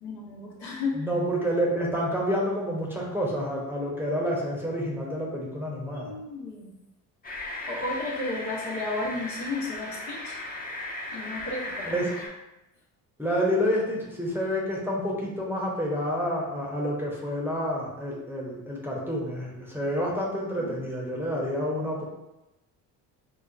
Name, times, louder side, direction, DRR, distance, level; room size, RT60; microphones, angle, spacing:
voice 1, 0.0-1.1 5.9-6.7 7.7-10.4 11.1-12.1 20.6-20.7, left 2 dB, 65° left, -3 dB, 1.2 m, -33 dB
voice 2, 0.9-6.1 11.8-12.1 13.2-22.0, equal, 5° right, -4 dB, 0.9 m, -28 dB
sound 1, 7.2-12.3, left 1 dB, 20° left, 0.8 m, -37 dB
4.6 x 2.0 x 2.6 m, 0.95 s
hypercardioid pair, 60°, 46 cm